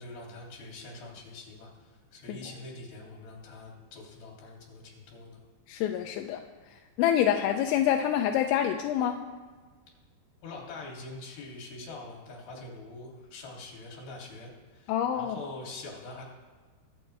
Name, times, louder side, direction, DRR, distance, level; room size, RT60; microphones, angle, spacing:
voice 1, 0.0-5.4 10.4-16.2, left 2 dB, 60° left, -2 dB, 4.4 m, -44 dB
voice 2, 5.7-6.4 7.0-9.2 14.9-15.4, left 10 dB, 85° left, 4 dB, 3.0 m, -26 dB
23.0 x 8.8 x 3.3 m, 1.5 s
omnidirectional pair, 5.3 m